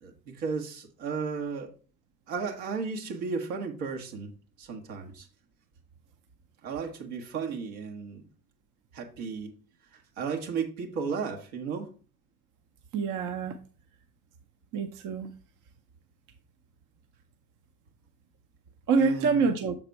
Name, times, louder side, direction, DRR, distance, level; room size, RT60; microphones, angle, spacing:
voice 1, 0.0-1.7 2.3-4.3 4.6-5.3 6.6-8.2 8.9-9.5 10.2-11.9 19.0-19.5, right 5 dB, 70° right, 3 dB, 1.4 m, -34 dB
voice 2, 12.9-13.6 14.7-15.3 18.9-19.8, right 4 dB, 45° right, 7 dB, 0.8 m, -26 dB
6.8 x 4.1 x 4.6 m, 0.38 s
figure-of-eight pair, 50°, 43 cm